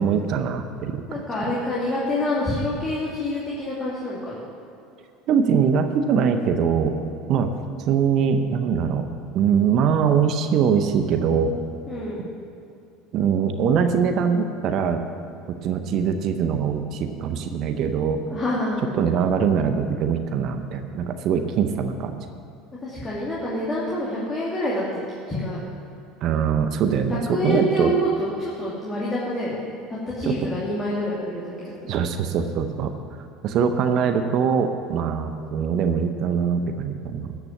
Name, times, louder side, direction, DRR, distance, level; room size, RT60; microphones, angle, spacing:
voice 1, 0.0-1.5 5.3-7.0 7.3-7.5 7.8-9.1 9.3-11.5 12.2-12.3 13.1-15.0 15.5-18.2 18.9-22.3 26.2-27.9 30.2-30.5 31.9-32.9 33.4-37.4, right 7 dB, 55° right, 7 dB, 0.8 m, -22 dB
voice 2, 1.1-4.4 11.9-12.2 18.3-18.8 22.8-25.0 25.3-25.6 27.3-29.6 30.1-32.0, left 1 dB, 20° left, -7 dB, 2.7 m, -27 dB
13.5 x 6.0 x 7.3 m, 2.6 s
hypercardioid pair, 75°, 0 cm